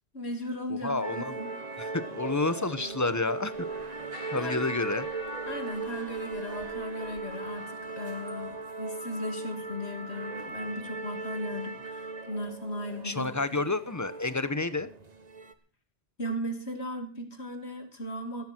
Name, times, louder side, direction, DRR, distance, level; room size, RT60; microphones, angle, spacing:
voice 1, 0.1-1.5 4.3-4.6 4.9-5.1 5.5-13.3 16.2-18.4, equal, 75° left, 5 dB, 3.1 m, -37 dB
voice 2, 0.7-1.4 1.8-3.7 4.3-5.1 13.0-14.9, left 3 dB, 15° left, 13 dB, 1.0 m, -30 dB
sound 1, 1.0-15.5, right 4 dB, 40° right, 1.3 m, -38 dB
sound 2, 3.5-7.8, left 1 dB, 35° left, 2.6 m, -45 dB
16.5 x 13.5 x 4.5 m, 0.35 s
omnidirectional pair, 1.1 m